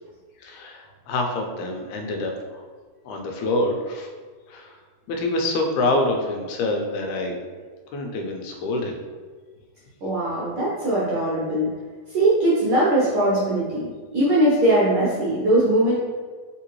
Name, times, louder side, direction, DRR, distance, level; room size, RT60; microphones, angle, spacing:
voice 1, 0.4-2.7 3.1-4.1 4.5-4.8 5.1-7.4 7.9-8.9, left 2 dB, 90° left, 2 dB, 2.1 m, -26 dB
voice 2, 10.0-11.7 12.1-15.9, right 1 dB, 65° right, -8 dB, 1.3 m, -20 dB
4.1 x 3.7 x 3.0 m, 1.5 s
omnidirectional pair, 3.3 m